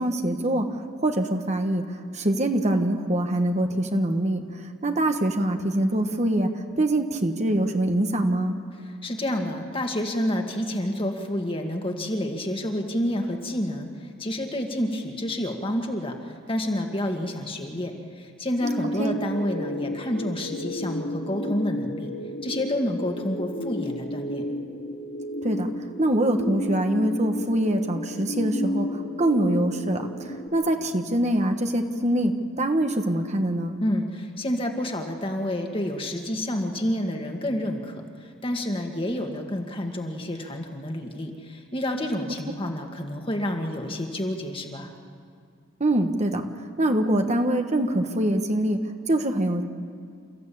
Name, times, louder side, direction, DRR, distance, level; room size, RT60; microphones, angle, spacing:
voice 1, 0.0-6.5 6.8-8.6 19.0-19.2 25.4-25.7 26.0-33.8 45.8-46.5 46.8-48.8 49.1-49.6, right 1 dB, 35° right, 5 dB, 1.3 m, -24 dB
voice 2, 9.0-22.1 22.4-24.4 33.8-38.0 38.4-44.9, left 1 dB, 25° left, 3 dB, 2.0 m, -29 dB
sound 1, 18.6-30.5, left 1 dB, 60° left, 3.7 m, -32 dB
29.5 x 14.5 x 8.6 m, 2.3 s
head